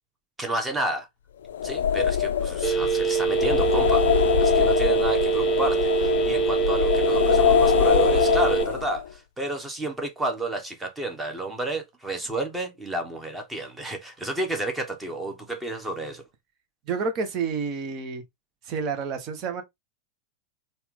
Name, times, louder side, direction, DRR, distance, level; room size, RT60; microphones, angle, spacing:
voice 1, 0.4-1.1 1.6-16.2, right 2 dB, 10° right, 1.4 m, -31 dB
sound 1, 1.5-9.1, left 9 dB, 60° left, 0.4 m, -23 dB
Telephone, 2.6-8.6, right 6 dB, 20° left, 1.0 m, -24 dB
voice 2, 16.9-18.2 18.7-19.6, right 5 dB, 35° right, 1.1 m, -29 dB
4.4 x 2.7 x 3.7 m
figure-of-eight pair, 90°, 0 cm